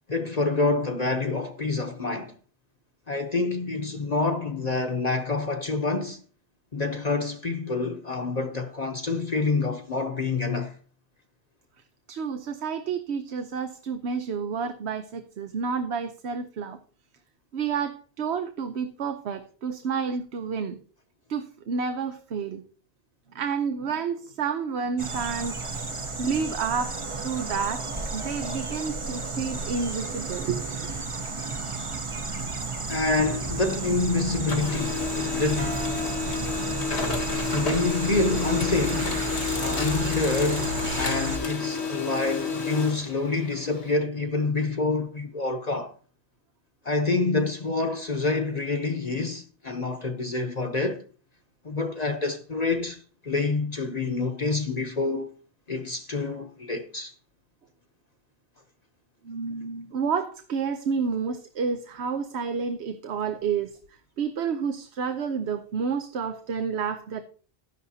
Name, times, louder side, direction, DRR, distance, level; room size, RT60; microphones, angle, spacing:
voice 1, 0.1-2.3 3.1-6.2 6.7-10.7 32.9-35.8 37.3-39.2 39.5-45.9 46.8-51.0 51.6-55.3 55.7-57.1, left 3 dB, 40° left, 0.9 m, -27 dB
voice 2, 12.1-16.8 17.5-20.8 21.3-22.6 23.3-25.6 26.2-27.0 27.2-27.9 28.1-30.6 59.2-63.8 64.2-67.2, right 6 dB, 75° right, 1.0 m, -30 dB
sound 1, 25.0-41.4, right 3 dB, 30° right, 0.8 m, -33 dB
Printer, 32.8-34.1 34.4-43.9, left 5 dB, 90° left, 1.9 m, -30 dB
sound 2, 35.6-39.2, right 1 dB, 55° right, 2.0 m, -41 dB
12.5 x 10.5 x 2.8 m
omnidirectional pair, 1.1 m